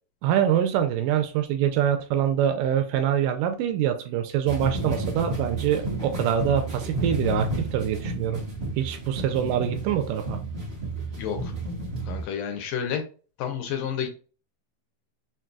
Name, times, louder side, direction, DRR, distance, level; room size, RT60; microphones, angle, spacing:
voice 1, 0.2-8.4 8.8-10.4, right 10 dB, 80° right, 6 dB, 2.0 m, -25 dB
sound 1, 4.4-12.2, right 2 dB, 40° right, 0.8 m, -31 dB
voice 2, 11.2-11.5 12.1-13.0 13.4-14.1, left 8 dB, 75° left, 4 dB, 2.1 m, -30 dB
5.9 x 2.7 x 2.3 m, 0.36 s
omnidirectional pair, 4.2 m